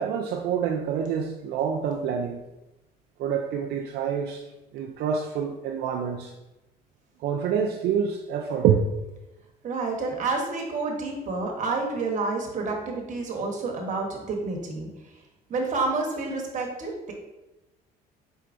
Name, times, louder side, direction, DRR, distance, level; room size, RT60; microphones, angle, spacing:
voice 1, 0.0-2.4 3.2-4.5 4.7-6.3 7.2-8.8, right 7 dB, 75° right, 1 dB, 0.5 m, -26 dB
voice 2, 9.6-15.2 15.5-17.1, right 3 dB, 45° right, 0 dB, 1.2 m, -29 dB
4.6 x 4.4 x 2.6 m, 1.0 s
cardioid pair, 110°, 17 cm